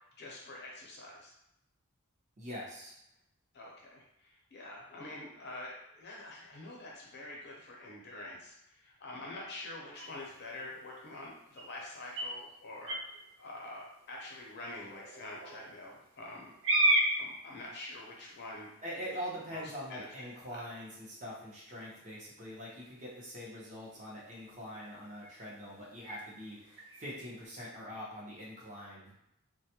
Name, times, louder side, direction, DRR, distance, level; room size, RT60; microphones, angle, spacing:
voice 1, 0.2-1.3 3.5-16.5 17.2-18.7 19.1-19.2 19.5-19.6 19.9-20.6, left 2 dB, 50° left, -3 dB, 0.6 m, -46 dB
voice 2, 2.4-2.9 18.8-29.1, equal, 35° right, -6 dB, 0.8 m, -43 dB
sound 1, 9.9-27.4, right 1 dB, 65° right, 0.5 m, -38 dB
2.3 x 2.1 x 2.8 m, 0.81 s
head